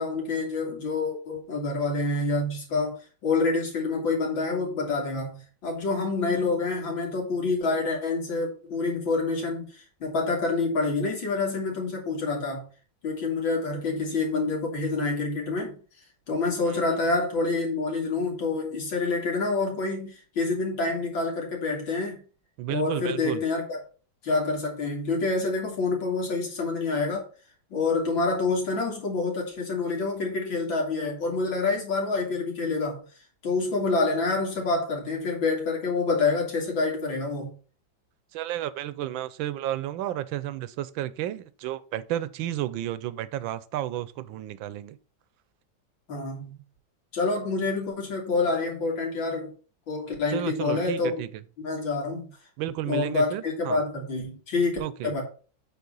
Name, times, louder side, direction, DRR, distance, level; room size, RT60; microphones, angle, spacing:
voice 1, 0.0-12.7 13.0-15.8 16.3-22.2 22.7-23.8 24.2-27.3 27.7-33.0 33.4-37.5 46.1-46.6 47.1-49.5 49.9-51.1 51.6-52.3 52.9-55.2, left 3 dB, 80° left, 3.2 m, -27 dB
voice 2, 16.7-17.0 22.6-23.4 38.3-45.0 50.3-51.4 52.6-53.8 54.8-55.1, right 13 dB, 80° right, 1.4 m, -32 dB
8.5 x 4.0 x 5.4 m
omnidirectional pair, 2.1 m